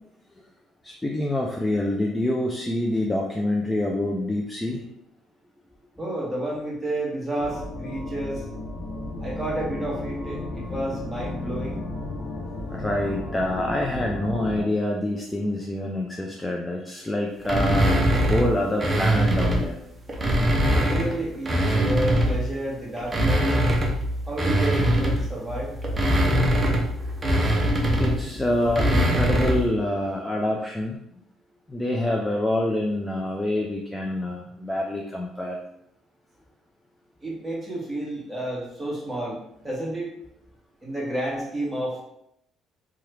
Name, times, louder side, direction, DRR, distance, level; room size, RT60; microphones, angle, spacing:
voice 1, 0.8-4.9 12.7-19.8 28.0-31.0 31.7-35.6, left 1 dB, 10° left, 0 dB, 0.4 m, -26 dB
voice 2, 6.0-8.4 9.2-11.8 20.6-23.5 24.3-25.7 37.2-40.1 40.8-42.0, right 1 dB, 5° right, -5 dB, 1.4 m, -30 dB
sound 1, 7.4-14.6, left 2 dB, 75° left, 0.7 m, -34 dB
sound 2, 17.4-19.7 20.1-22.5 23.0-29.7, equal, 25° right, 0.7 m, -22 dB
2.9 x 2.3 x 3.2 m, 0.76 s
cardioid pair, 95°, 0 cm